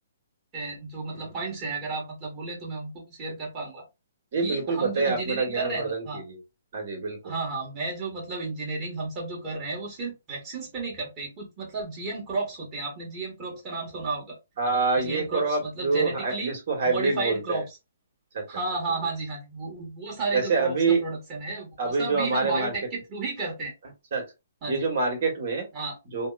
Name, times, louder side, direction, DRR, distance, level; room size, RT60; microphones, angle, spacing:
voice 1, 0.5-3.8 4.4-6.2 7.2-14.4 15.0-16.5 16.8-17.8 18.5-23.7 24.6-24.9 25.7-26.0, right 3 dB, 25° right, -2 dB, 1.5 m, -33 dB
voice 2, 4.3-6.4 6.7-7.3 14.6-17.6 18.3-18.4 20.3-21.0 21.8-22.7 24.1-24.2 24.7-25.6 26.1-26.3, right 4 dB, 55° right, 2 dB, 1.6 m, -26 dB
3.4 x 2.1 x 2.4 m, 0.24 s
hypercardioid pair, 145°, 0 cm